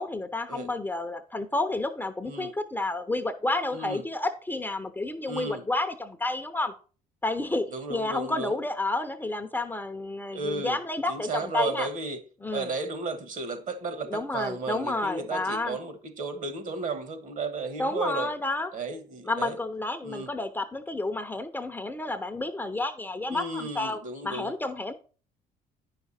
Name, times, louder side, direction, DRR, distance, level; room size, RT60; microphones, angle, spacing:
voice 1, 0.0-6.7 7.2-11.9 12.4-12.7 14.1-15.8 17.8-18.7 19.3-24.9, left 2 dB, 10° left, 0.7 m, -30 dB
voice 2, 3.7-4.0 5.3-5.6 7.7-8.6 10.3-10.8 11.1-12.2 12.5-18.3 18.7-19.5 20.0-20.3 23.3-24.6, right 3 dB, 50° right, 1.4 m, -34 dB
9.5 x 5.9 x 4.2 m
cardioid pair, 110°, 17 cm